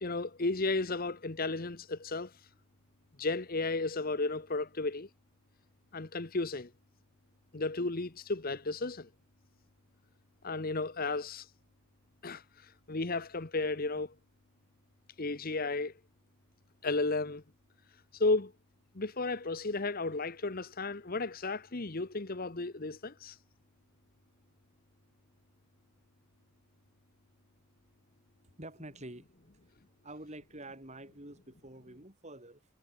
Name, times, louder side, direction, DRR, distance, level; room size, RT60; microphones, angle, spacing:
voice 1, 0.0-2.3 3.2-5.1 5.9-6.7 7.5-9.1 10.4-11.5 12.2-12.4 12.9-14.1 15.2-15.9 16.8-17.4 18.1-18.5 18.9-23.4, left 3 dB, 40° left, 1.1 m, -33 dB
voice 2, 28.4-29.3 30.0-32.7, right 1 dB, 30° right, 6.3 m, -47 dB
head